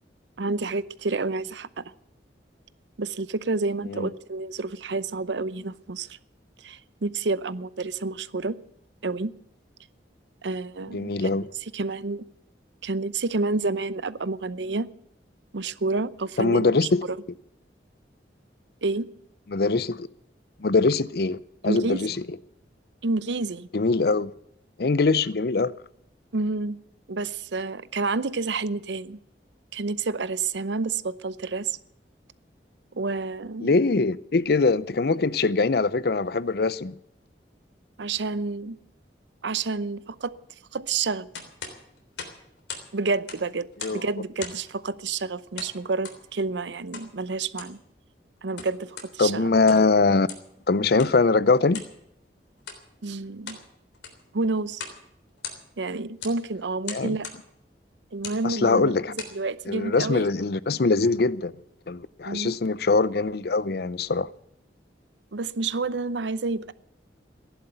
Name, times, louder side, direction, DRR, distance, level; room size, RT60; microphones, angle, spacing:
voice 1, 0.4-1.9 3.0-6.2 6.6-8.6 9.0-9.3 10.4-11.3 11.7-12.2 12.8-14.9 15.5-17.2 18.8-19.1 21.7-22.2 23.0-23.7 26.3-26.8 27.1-29.2 29.7-31.8 32.9-33.7 38.0-38.8 39.4-40.4 40.7-41.3 42.9-47.8 48.4-49.5 53.0-53.6 54.3-54.8 55.8-57.3 58.1-58.9 59.3-60.3 62.3-62.6 65.3-66.7, right 3 dB, 80° right, 0.7 m, -29 dB
voice 2, 10.9-11.5 16.4-17.0 19.5-20.1 20.6-22.2 23.7-24.3 24.8-25.7 33.6-36.9 43.8-44.0 49.2-50.3 50.7-51.8 56.9-57.2 58.4-59.1 59.7-61.5 61.9-64.3, left 3 dB, 60° left, 0.6 m, -22 dB
sound 1, 41.3-42.9 43.2-44.1 44.4-44.7 45.6-46.2 46.9-47.1 47.5-47.8 48.4-49.1 49.5-49.9 50.3-50.5 51.0-51.2 51.7-51.9 52.6-52.8 53.2-53.7 53.9-54.3 54.7-55.0 55.3-55.8 56.2-56.4 56.8-57.4 58.1-58.4 58.9-59.4, left 5 dB, 80° left, 3.4 m, -39 dB
15.5 x 11.0 x 8.0 m
head